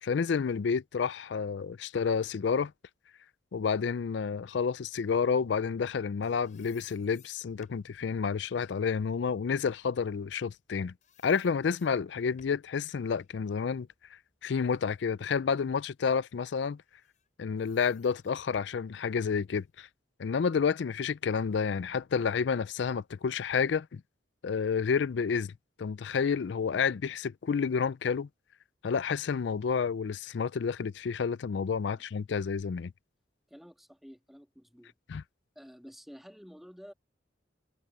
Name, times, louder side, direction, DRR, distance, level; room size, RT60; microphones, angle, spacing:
voice 1, 0.0-2.7 3.5-10.9 11.2-13.9 14.4-16.8 17.4-19.9 20.2-24.0 24.4-28.3 28.8-32.9 35.1-35.2, left 6 dB, 70° left, 0.4 m, -30 dB
sound 1, 6.0-10.7 11.0-12.7 13.2-15.2 15.6-15.8 16.8-19.8, left 7 dB, 40° left, 7.2 m, -64 dB
voice 2, 33.5-34.9 35.5-36.9, equal, ahead, 1.6 m, -51 dB
head